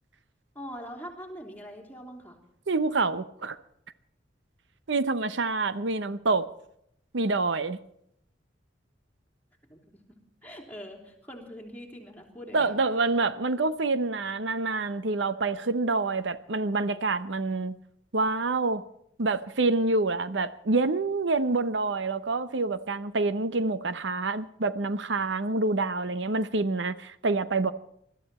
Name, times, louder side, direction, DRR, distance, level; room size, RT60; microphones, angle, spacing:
voice 1, 0.6-2.4 9.7-9.9 10.4-12.7, equal, 10° left, 3.4 m, -43 dB
voice 2, 2.7-3.6 4.9-6.5 7.1-7.8 12.5-17.8 18.1-18.8 19.2-27.7, right 3 dB, 80° right, 0.8 m, -27 dB
21.0 x 13.5 x 4.3 m
head